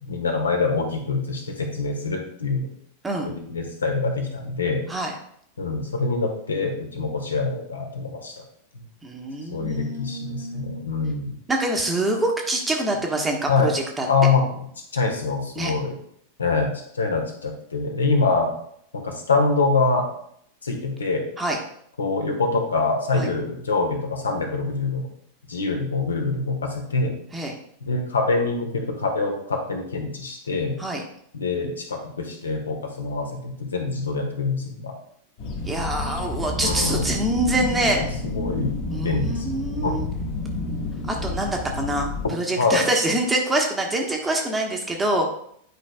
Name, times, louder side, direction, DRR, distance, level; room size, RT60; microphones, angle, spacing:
voice 1, 0.0-2.7 3.2-4.8 5.6-8.3 9.5-11.4 13.5-13.7 14.0-14.4 14.9-15.9 16.4-18.5 18.9-20.1 20.6-21.3 22.0-25.1 25.5-27.1 27.8-30.8 31.3-34.9 36.5-37.1 37.9-39.5 39.8-39.9 42.5-42.9, left 3 dB, 70° left, 3 dB, 1.3 m, -25 dB
voice 2, 9.0-10.8 11.5-14.1 15.5-15.7 21.4-21.6 23.1-23.3 27.3-27.5 30.8-31.0 35.7-38.0 38.9-40.0 41.1-45.3, right 1 dB, 10° right, 1 dB, 1.1 m, -25 dB
sound 1, 35.4-42.3, left 2 dB, 45° left, 1.6 m, -29 dB
9.7 x 5.1 x 2.3 m, 0.69 s
figure-of-eight pair, 90°, 0 cm